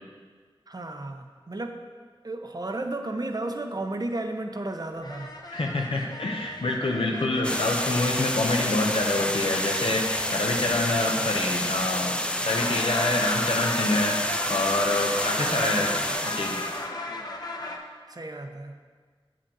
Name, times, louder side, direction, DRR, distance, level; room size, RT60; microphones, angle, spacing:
voice 1, 0.7-1.8 2.2-5.4 15.3-16.2 18.1-18.8, right 2 dB, 45° right, 5 dB, 0.7 m, -34 dB
sound 1, 5.0-12.0 12.3-17.8, left 1 dB, 45° left, 0.9 m, -36 dB
voice 2, 5.5-12.2 12.4-16.0 16.2-16.6, left 2 dB, 75° left, 0 dB, 0.9 m, -26 dB
sound 2, 7.4-16.9, left 1 dB, 10° left, 0.5 m, -29 dB
7.6 x 6.6 x 3.9 m, 1.6 s
wide cardioid pair, 45°, 9 cm